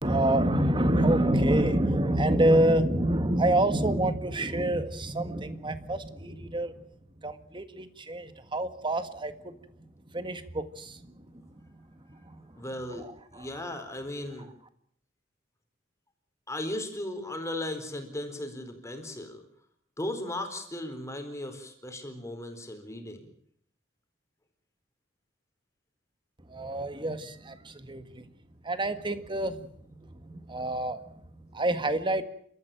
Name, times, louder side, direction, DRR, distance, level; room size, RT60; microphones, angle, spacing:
voice 1, 0.0-6.7 7.2-9.5 10.1-11.8 12.1-12.4 12.9-13.7 26.5-28.2 28.6-29.7 30.0-31.0 31.5-32.2, right 1 dB, 25° right, 10 dB, 1.8 m, -27 dB
voice 2, 12.6-13.1 13.3-14.5 16.5-19.4 20.0-23.2, left 1 dB, 15° left, 5 dB, 4.3 m, -36 dB
30.0 x 14.0 x 9.0 m, 0.66 s
head